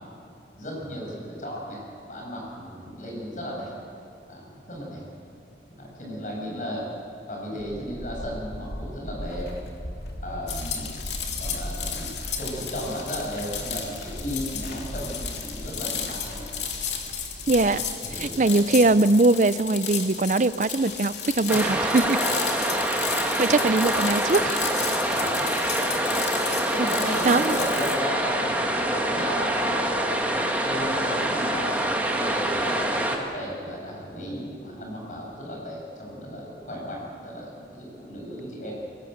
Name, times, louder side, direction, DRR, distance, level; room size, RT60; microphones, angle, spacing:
voice 1, 0.5-1.8 2.1-3.7 4.3-5.0 5.8-6.9 7.3-9.5 10.2-11.0 11.4-12.1 12.4-16.5 18.0-18.8 21.5-21.9 25.1-25.7 26.7-38.7, equal, 45° left, -2 dB, 7.5 m, -35 dB
sound 1, 7.6-18.4, equal, 60° left, 2.7 m, -38 dB
sound 2, 10.5-28.0, left 7 dB, 80° left, 2.7 m, -33 dB
voice 2, 17.5-17.8 18.2-22.2 23.4-24.6 26.8-26.9 27.2-27.6, right 2 dB, 45° right, 15 dB, 0.5 m, -21 dB
sound 3, 21.5-33.2, right 1 dB, 10° right, 1.9 m, -25 dB
22.0 x 19.5 x 8.0 m, 2.6 s
head